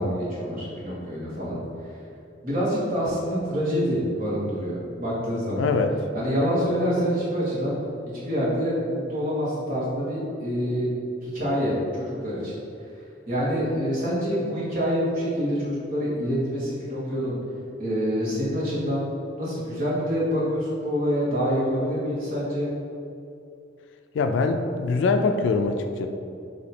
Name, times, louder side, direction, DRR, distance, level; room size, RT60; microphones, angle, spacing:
voice 1, 0.0-1.6 2.4-5.7 6.1-7.8 8.1-10.9 11.2-12.6 13.3-17.4 17.8-19.1 19.4-22.7, equal, 50° right, -8 dB, 1.4 m, -26 dB
voice 2, 5.6-5.9 24.1-26.1, left 4 dB, 70° left, 6 dB, 0.3 m, -23 dB
4.0 x 2.8 x 4.2 m, 2.5 s
head